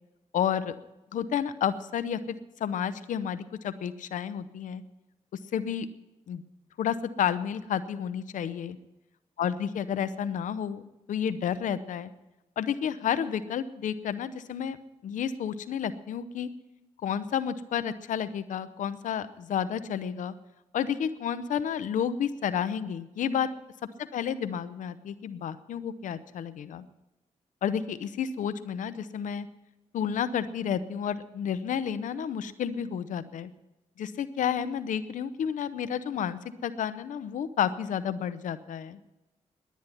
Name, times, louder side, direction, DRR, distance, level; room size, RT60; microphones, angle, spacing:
voice 1, 0.3-0.7 1.1-4.8 5.5-5.9 6.3-6.4 6.8-8.8 9.4-12.1 12.6-14.8 15.0-16.5 17.0-20.3 20.7-23.5 24.1-26.8 27.6-29.5 29.9-33.5 34.0-39.0, left 8 dB, 85° left, 12 dB, 0.7 m, -31 dB
10.5 x 9.3 x 9.9 m, 0.98 s
cardioid pair, 60°, 13 cm